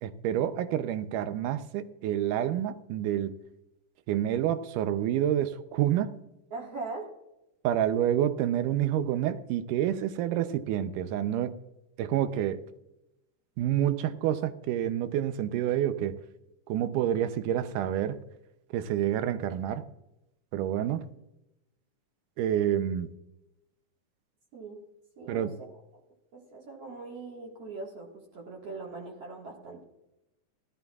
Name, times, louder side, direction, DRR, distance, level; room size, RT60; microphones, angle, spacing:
voice 1, 0.0-3.3 4.1-6.2 7.6-11.6 12.0-12.6 13.6-16.1 16.7-18.2 18.7-19.9 20.5-21.1 22.4-23.1 25.3-25.5, right 11 dB, 85° right, 11 dB, 2.3 m, -28 dB
voice 2, 6.5-7.1 24.5-24.8 25.2-25.5 26.3-29.8, right 3 dB, 55° right, -2 dB, 2.7 m, -41 dB
16.5 x 13.5 x 2.4 m, 0.90 s
omnidirectional pair, 3.6 m